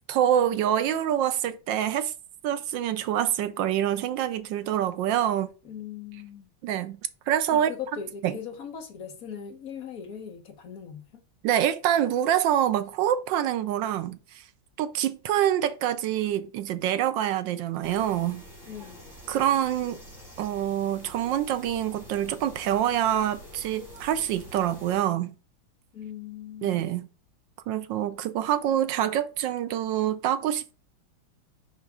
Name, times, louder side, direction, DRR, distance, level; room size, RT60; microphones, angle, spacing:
voice 1, 0.1-2.1 2.4-5.5 6.6-7.0 7.3-7.7 8.2-8.3 11.4-14.4 14.8-18.4 19.3-20.0 20.4-25.3 26.6-27.1 27.7-30.7, right 11 dB, 75° right, 1.2 m, -26 dB
voice 2, 5.6-6.5 7.5-11.2 18.7-19.0 25.9-26.8, left 8 dB, 55° left, 1.2 m, -40 dB
sound 1, 17.8-25.0, equal, ahead, 3.7 m, -47 dB
6.0 x 5.1 x 3.5 m
omnidirectional pair, 2.2 m